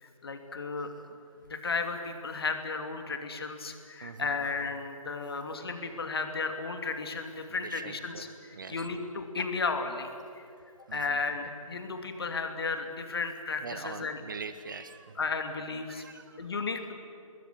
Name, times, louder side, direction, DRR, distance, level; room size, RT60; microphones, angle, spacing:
voice 1, 0.0-0.9 1.4-10.1 10.3-10.5 10.9-14.2 15.2-16.1 16.4-16.9, left 4 dB, 40° left, 6 dB, 2.8 m, -34 dB
voice 2, 4.0-4.4 7.5-8.3 8.5-8.9 10.9-11.2 13.6-15.2 15.9-16.5, right 5 dB, 35° right, 11 dB, 1.1 m, -43 dB
29.0 x 20.5 x 9.7 m, 2.5 s
figure-of-eight pair, 150°, 18 cm